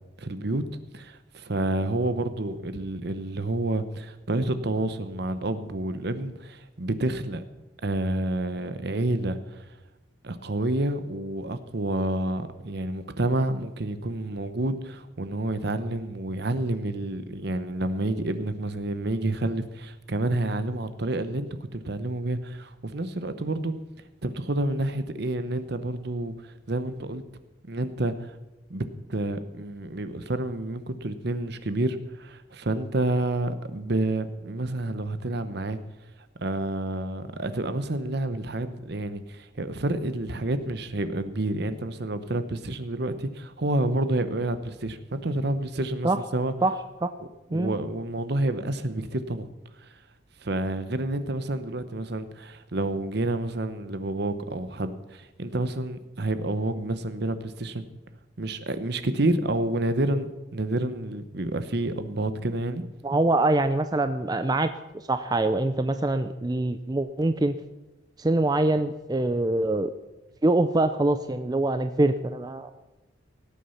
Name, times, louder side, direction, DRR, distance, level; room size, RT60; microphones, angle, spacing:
voice 1, 0.2-0.6 0.9-7.4 7.8-9.6 10.2-23.8 24.2-27.2 27.7-28.3 28.7-35.8 36.4-46.5 47.5-49.5 49.8-49.9 50.4-57.9 58.4-62.8, right 1 dB, 55° right, 11 dB, 0.9 m, -29 dB
voice 2, 63.0-67.5 68.2-69.9 70.4-72.7, right 2 dB, 20° right, 10 dB, 0.4 m, -24 dB
18.0 x 8.4 x 5.7 m, 1.0 s
head